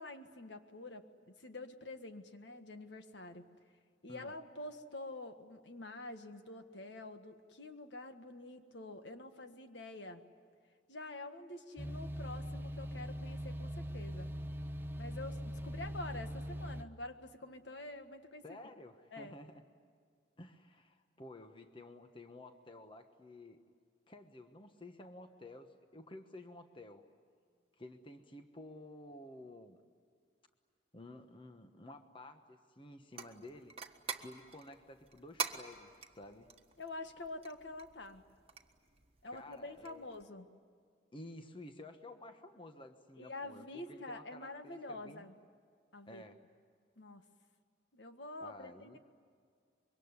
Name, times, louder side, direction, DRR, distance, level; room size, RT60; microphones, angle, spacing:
voice 1, 0.0-3.5 4.0-10.2 10.9-14.3 14.9-18.6 19.1-19.4 36.8-38.2 39.2-40.5 43.2-45.3 45.9-46.2 47.0-47.3 47.9-49.0, left 2 dB, 70° left, 7 dB, 1.6 m, -47 dB
sound 1, 11.8-16.8, equal, 10° right, 0.7 m, -41 dB
voice 2, 18.4-19.6 20.4-23.6 24.1-27.0 27.8-29.8 30.9-33.8 34.2-36.5 39.3-40.1 41.1-45.3 46.1-46.4 48.4-49.0, left 1 dB, 25° left, 7 dB, 1.2 m, -52 dB
sound 2, 33.1-40.2, right 5 dB, 30° right, 1.5 m, -46 dB
25.5 x 23.5 x 9.7 m, 2.1 s
head